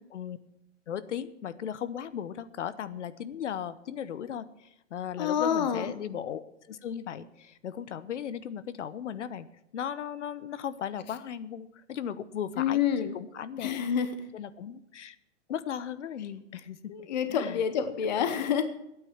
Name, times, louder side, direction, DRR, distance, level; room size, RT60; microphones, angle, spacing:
voice 1, 0.9-6.4 6.7-9.5 9.7-13.7 14.3-15.2 15.5-16.9 17.3-17.6 18.2-18.3, left 9 dB, 70° left, 16 dB, 1.0 m, -37 dB
voice 2, 5.2-5.9 12.6-13.1 13.6-14.1 16.9-18.6, left 8 dB, 35° left, 10 dB, 0.8 m, -27 dB
12.5 x 9.2 x 7.2 m, 0.86 s
hypercardioid pair, 175°, 37 cm